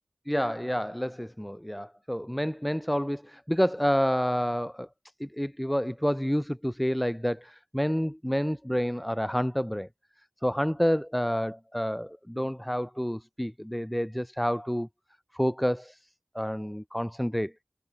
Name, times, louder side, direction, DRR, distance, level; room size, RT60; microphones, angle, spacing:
voice 1, 0.3-4.9 5.2-9.9 10.4-14.9 15.3-16.0 16.3-17.5, equal, 5° left, 4.6 m, -29 dB
wide cardioid pair, 45°, 0 cm